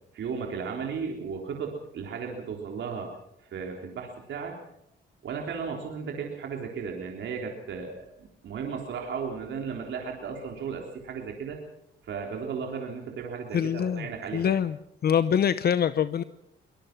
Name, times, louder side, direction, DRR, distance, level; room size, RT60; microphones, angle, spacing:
voice 1, 0.1-3.1 3.5-4.6 5.2-11.6 12.0-14.6, right 6 dB, 70° right, 1 dB, 3.6 m, -35 dB
voice 2, 13.5-14.1 14.3-14.8 15.0-16.2, left 8 dB, 55° left, 14 dB, 0.8 m, -24 dB
23.5 x 19.5 x 6.0 m, 0.80 s
cardioid pair, 90°, 20 cm